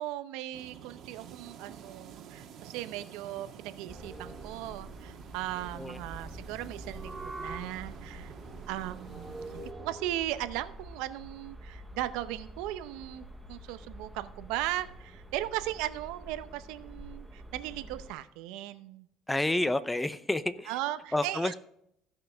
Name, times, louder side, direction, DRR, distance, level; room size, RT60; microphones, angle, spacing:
voice 1, 0.0-8.3 8.7-19.1 20.7-21.6, right 14 dB, 80° right, 12 dB, 0.7 m, -37 dB
sound 1, 0.5-9.7, right 8 dB, 55° right, 1.4 m, -49 dB
sound 2, 3.9-18.1, right 1 dB, 5° right, 0.9 m, -46 dB
voice 2, 19.3-20.7 21.1-21.6, left 1 dB, 10° left, 14 dB, 0.6 m, -29 dB
16.0 x 5.7 x 3.4 m, 0.74 s
cardioid pair, 115°, 0 cm